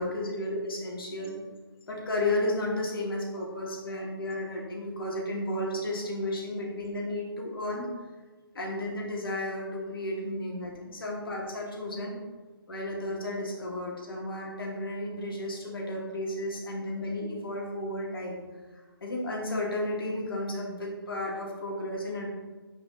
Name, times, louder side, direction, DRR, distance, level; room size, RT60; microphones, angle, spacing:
voice 1, 0.0-1.3 1.9-7.9 8.5-10.7 11.0-12.2 12.7-18.4 19.0-22.3, left 1 dB, 65° left, -3 dB, 2.6 m, -33 dB
7.7 x 5.3 x 4.2 m, 1.3 s
hypercardioid pair, 155°, 13 cm